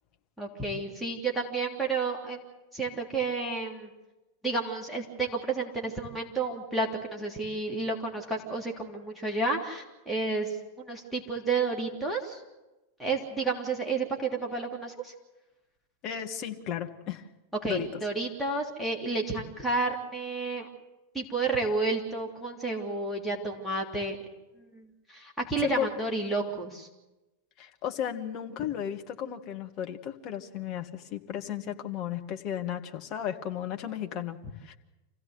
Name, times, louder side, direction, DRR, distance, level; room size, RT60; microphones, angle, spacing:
voice 1, 0.4-2.4 2.7-3.9 4.4-12.4 13.0-15.1 17.6-20.7 21.1-24.2 24.6-26.9, right 3 dB, ahead, -2 dB, 3.1 m, -31 dB
voice 2, 16.0-17.2 17.7-17.9 25.6-25.9 27.6-34.8, left 10 dB, 40° left, 4 dB, 1.8 m, -34 dB
27.0 x 16.0 x 8.1 m, 1.1 s
figure-of-eight pair, 90°, 0 cm